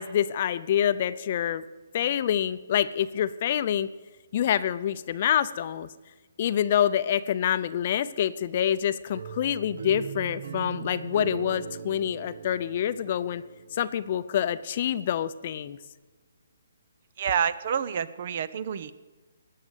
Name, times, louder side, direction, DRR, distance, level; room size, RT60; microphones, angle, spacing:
voice 1, 0.0-1.7 1.9-3.9 4.3-5.9 6.4-13.4 13.7-15.8, left 10 dB, 45° left, 14 dB, 0.6 m, -26 dB
sound 1, 9.1-14.0, right 6 dB, 70° right, 1.1 m, -39 dB
voice 2, 17.2-18.9, right 8 dB, 50° right, 16 dB, 0.7 m, -28 dB
18.5 x 6.6 x 8.1 m, 1.3 s
hypercardioid pair, 150°, 0 cm